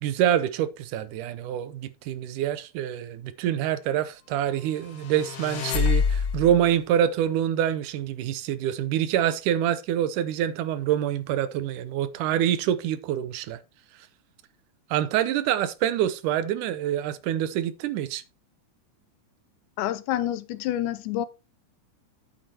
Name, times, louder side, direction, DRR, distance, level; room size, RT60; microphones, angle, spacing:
voice 1, 0.0-13.6 14.9-18.2, right 10 dB, 90° right, 2.3 m, -26 dB
sound 1, 4.9-6.6, left 6 dB, 60° left, 1.1 m, -26 dB
voice 2, 19.8-21.3, left 12 dB, 80° left, 2.1 m, -28 dB
9.2 x 8.6 x 2.9 m
omnidirectional pair, 3.5 m